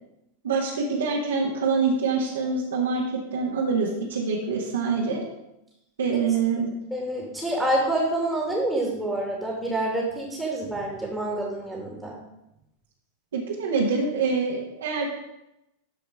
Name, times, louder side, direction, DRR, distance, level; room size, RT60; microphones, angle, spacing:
voice 1, 0.4-5.2 6.0-6.7 13.3-15.1, right 4 dB, 65° right, -4 dB, 1.8 m, -25 dB
voice 2, 6.9-12.2, right 1 dB, ahead, -3 dB, 2.4 m, -27 dB
13.0 x 5.0 x 4.8 m, 0.88 s
figure-of-eight pair, 90°, 0 cm